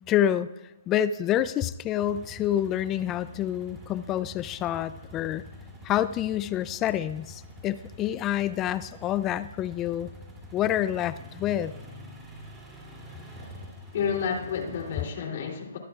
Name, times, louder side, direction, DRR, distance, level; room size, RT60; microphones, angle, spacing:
voice 1, 0.1-0.5 0.9-5.4 5.8-10.1 10.5-11.7, left 11 dB, 20° left, 0.4 m, -27 dB
sound 1, 2.0-15.1, equal, 10° right, 3.0 m, -46 dB
voice 2, 13.9-15.8, left 7 dB, 50° left, 3.2 m, -30 dB
22.0 x 13.0 x 2.5 m
hypercardioid pair, 145°, 0 cm